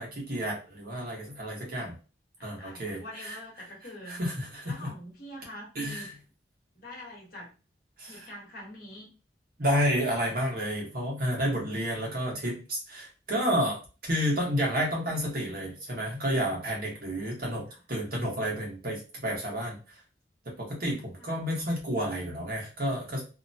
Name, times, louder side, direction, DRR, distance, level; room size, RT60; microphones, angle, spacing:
voice 1, 0.0-1.9 2.4-3.4 4.1-4.9 5.7-6.1 8.0-8.3 9.6-13.8 14.1-20.0 20.6-23.2, equal, 55° right, -2 dB, 1.1 m, -30 dB
voice 2, 2.4-4.2 4.6-6.1 6.7-7.5 8.1-9.1 15.0-15.4 17.7-17.8 21.2-21.4, left 1 dB, 50° left, -3 dB, 1.2 m, -45 dB
2.8 x 2.2 x 2.6 m, 0.33 s
head